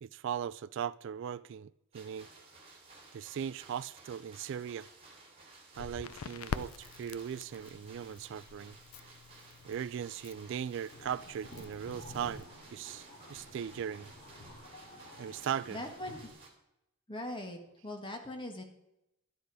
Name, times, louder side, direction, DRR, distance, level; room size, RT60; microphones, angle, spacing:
voice 1, 0.0-2.3 3.1-4.9 5.8-8.8 9.7-12.5 12.7-14.1 15.2-15.8, right 8 dB, 60° right, 0.3 m, -38 dB
sound 1, 1.9-16.5, right 3 dB, 30° right, 2.5 m, -56 dB
Crackle, 5.7-12.4, left 6 dB, 85° left, 0.5 m, -46 dB
sound 2, 10.9-16.3, left 1 dB, 40° left, 3.3 m, -51 dB
voice 2, 15.4-16.3 17.1-18.6, left 1 dB, 25° left, 1.6 m, -41 dB
12.0 x 8.9 x 4.8 m
head